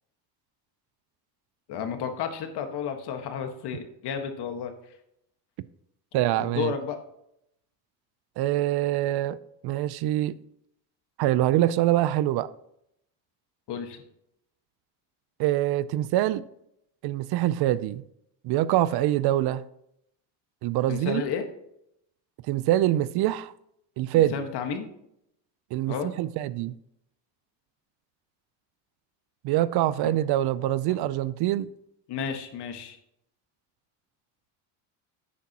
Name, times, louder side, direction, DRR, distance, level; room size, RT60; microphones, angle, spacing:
voice 1, 1.7-4.7 6.4-7.0 13.7-14.0 20.9-21.4 24.1-24.9 25.9-26.1 30.0-30.1 30.9-31.0 32.1-33.0, left 7 dB, 60° left, 1.5 m, -32 dB
voice 2, 6.1-6.7 8.4-9.4 9.6-10.4 11.2-12.5 15.4-16.4 17.0-18.0 18.4-19.7 20.6-21.2 22.5-23.5 24.0-24.3 25.7-26.8 29.4-31.7, right 14 dB, 55° right, 0.5 m, -24 dB
10.5 x 8.5 x 2.9 m
supercardioid pair, 100°, 46 cm